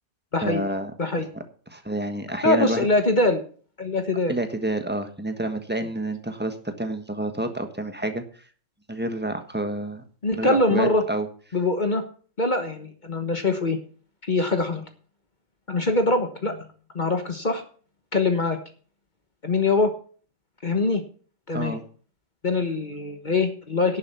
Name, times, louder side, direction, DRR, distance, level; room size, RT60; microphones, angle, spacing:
voice 1, 0.4-0.9 1.7-2.9 4.3-8.2 8.9-10.0 10.3-11.3 21.5-21.8, right 1 dB, 10° right, 7 dB, 1.4 m, -28 dB
voice 2, 2.4-3.4 3.8-4.3 10.2-11.0 11.5-12.0 12.4-13.8 14.2-14.8 15.7-16.6 16.9-17.6 18.1-18.6 19.4-19.9 20.6-21.0 21.5-21.8 22.4-24.0, left 2 dB, 40° left, 6 dB, 1.4 m, -23 dB
11.0 x 7.1 x 7.1 m, 0.43 s
omnidirectional pair, 1.3 m